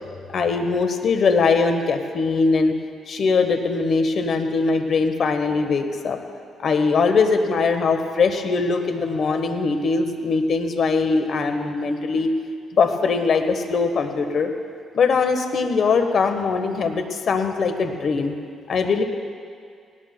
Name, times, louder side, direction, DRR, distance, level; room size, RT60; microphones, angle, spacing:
voice 1, 0.3-2.8 3.1-6.2 6.6-12.3 12.7-14.5 14.9-18.3 18.7-19.0, left 4 dB, 55° left, 7 dB, 1.1 m, -21 dB
18.0 x 18.0 x 2.2 m, 2.2 s
cardioid pair, 90°, 0 cm